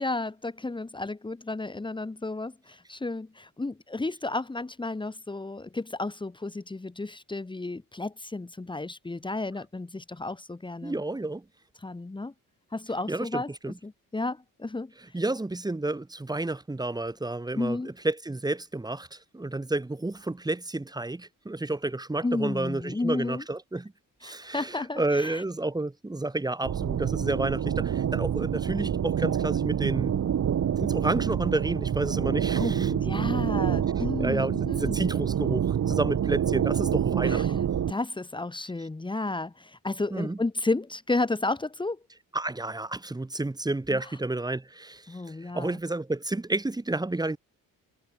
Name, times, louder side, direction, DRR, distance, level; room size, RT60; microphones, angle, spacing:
voice 1, 0.0-11.0 11.8-12.3 12.7-13.5 13.8-14.9 17.6-17.9 22.2-23.4 24.2-25.4 32.6-35.0 37.2-37.6 37.9-42.0 43.9-44.1 45.1-45.8, left 2 dB, 15° left, 3.8 m, -32 dB
voice 2, 10.8-11.4 13.1-13.7 15.1-17.8 18.0-23.9 24.2-30.1 30.8-33.3 34.2-37.6 40.1-40.4 42.3-47.4, right 2 dB, 10° right, 4.6 m, -30 dB
sound 1, 26.6-37.9, right 9 dB, 50° right, 5.3 m, -27 dB
cardioid pair, 170°, 35 cm